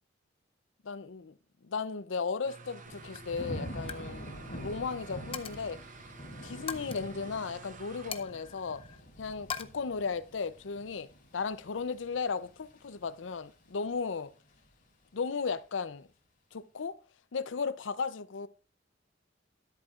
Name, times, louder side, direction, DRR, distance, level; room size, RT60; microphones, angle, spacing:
voice 1, 0.8-1.4 1.6-5.8 6.4-8.8 9.2-11.1 11.3-14.3 15.1-16.1 16.5-17.0 17.3-18.5, left 5 dB, 75° left, 0.6 m, -35 dB
sound 1, 2.4-8.4, right 4 dB, 45° right, 1.0 m, -51 dB
Coin (dropping), 2.6-2.8 3.1-3.4 3.7-4.1 4.4-4.6 5.3-5.8 6.7-7.0 8.1-9.0 9.5-9.6, left 7 dB, 30° left, 0.6 m, -41 dB
Thunder / Rain, 2.8-13.8 14.2-14.7, equal, 45° left, 3.5 m, -46 dB
12.5 x 10.5 x 2.4 m
head